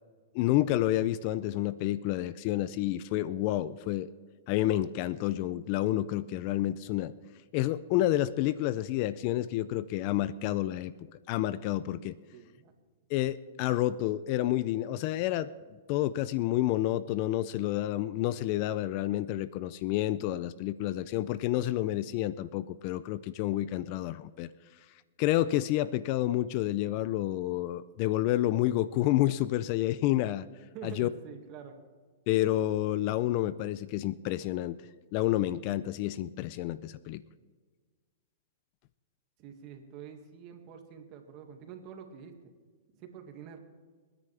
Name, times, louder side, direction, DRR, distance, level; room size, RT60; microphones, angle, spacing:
voice 1, 0.3-4.1 4.5-7.1 7.5-10.9 11.3-12.2 13.1-15.5 15.9-24.5 25.2-30.5 30.8-31.1 32.3-34.8 35.1-37.2, left 14 dB, 40° left, 16 dB, 0.4 m, -29 dB
voice 2, 12.3-12.7 30.7-31.8 39.4-42.5 43.0-43.6, right 7 dB, 35° right, 4 dB, 2.0 m, -46 dB
29.0 x 9.9 x 3.4 m, 1.5 s
hypercardioid pair, 150°, 0 cm